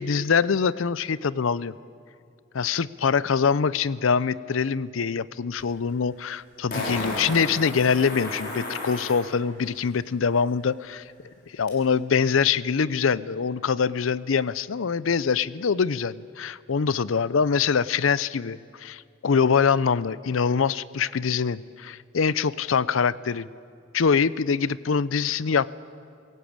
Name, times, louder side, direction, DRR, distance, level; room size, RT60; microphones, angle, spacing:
voice 1, 0.0-1.7 2.5-11.0 11.5-23.5 23.9-25.7, left 6 dB, 85° left, 18 dB, 0.5 m, -24 dB
Fart, 5.6-5.7 6.7-9.2 11.7-11.8, left 1 dB, 55° left, 5.7 m, -32 dB
23.0 x 16.5 x 8.7 m, 2.3 s
head